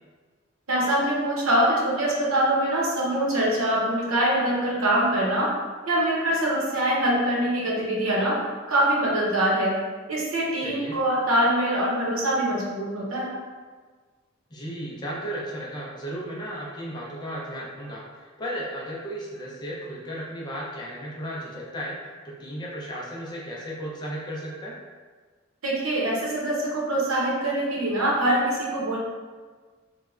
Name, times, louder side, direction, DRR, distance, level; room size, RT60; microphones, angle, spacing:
voice 1, 0.7-5.5 5.9-8.4 8.7-9.8 10.1-13.4 25.6-29.0, right 1 dB, 90° right, -5 dB, 0.8 m, -24 dB
voice 2, 10.6-11.0 14.5-22.0 22.2-24.7, equal, 20° left, -4 dB, 0.5 m, -35 dB
3.3 x 2.1 x 2.4 m, 1.5 s
head